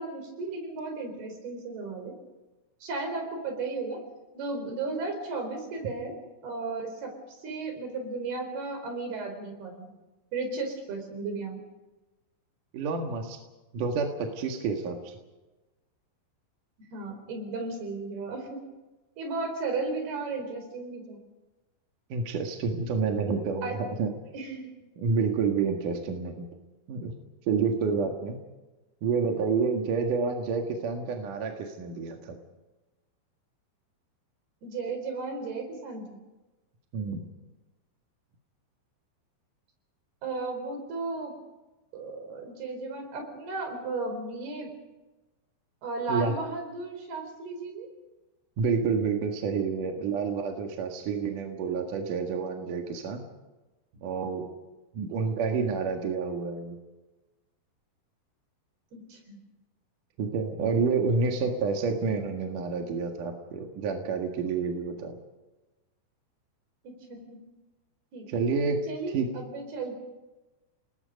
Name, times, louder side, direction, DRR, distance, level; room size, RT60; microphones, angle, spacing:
voice 1, 0.0-2.2 2.8-4.0 4.3-6.2 6.4-9.9 10.3-11.6 16.9-18.6 19.2-21.2 23.6-23.8 24.3-24.8 34.6-36.2 40.2-41.3 41.9-44.7 45.8-47.9 58.9-59.4 66.8-67.4 68.1-68.3 68.9-70.0, right 3 dB, 75° right, 5 dB, 6.2 m, -35 dB
voice 2, 12.7-13.4 13.7-15.2 22.1-24.1 25.0-26.5 26.9-27.1 27.5-28.4 29.0-32.4 36.9-37.3 46.1-46.3 48.6-53.2 54.0-54.5 54.9-56.8 60.2-65.2 68.3-68.8 69.1-69.3, right 5 dB, 60° right, 3 dB, 3.1 m, -29 dB
29.5 x 20.0 x 5.3 m, 1.1 s
omnidirectional pair, 4.6 m